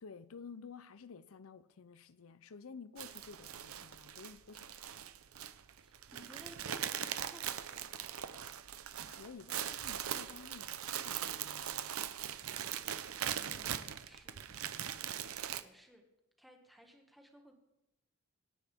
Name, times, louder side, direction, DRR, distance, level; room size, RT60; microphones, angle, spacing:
voice 1, 0.0-5.1 9.1-12.0, left 5 dB, 75° left, 0.6 m, -52 dB
sound 1, 3.0-15.6, right 10 dB, 90° right, 0.7 m, -41 dB
voice 2, 5.7-8.4 13.4-14.5 15.6-16.1 16.4-17.6, equal, ahead, 1.9 m, -59 dB
26.5 x 10.0 x 3.6 m
head